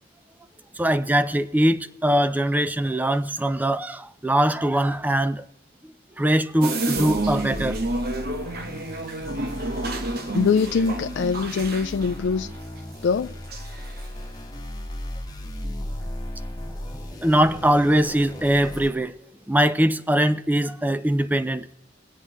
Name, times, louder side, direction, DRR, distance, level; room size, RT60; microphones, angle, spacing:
voice 1, 0.8-5.4 6.2-7.8 9.9-10.2 16.9-19.1 19.5-21.7, right 1 dB, 10° right, 0.4 m, -22 dB
sound 1, 6.6-13.2 13.5-14.0, right 2 dB, 55° right, 1.0 m, -30 dB
sound 2, 7.0-18.9, left 1 dB, 20° left, 1.3 m, -36 dB
voice 2, 10.3-12.5 13.0-13.4, left 5 dB, 70° left, 0.4 m, -23 dB
22.5 x 8.1 x 3.0 m
head